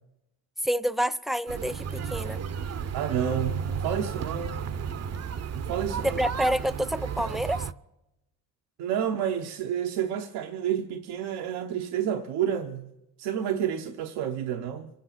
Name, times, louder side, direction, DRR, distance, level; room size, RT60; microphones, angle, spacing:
voice 1, 0.6-2.4 6.0-7.7, equal, ahead, 0.7 m, -28 dB
sound 1, 1.5-7.7, right 6 dB, 40° right, 0.7 m, -33 dB
voice 2, 2.9-4.6 5.5-6.2 8.8-12.9 13.2-14.9, right 9 dB, 80° right, 1.0 m, -30 dB
25.5 x 8.6 x 5.9 m
supercardioid pair, 65°, 39 cm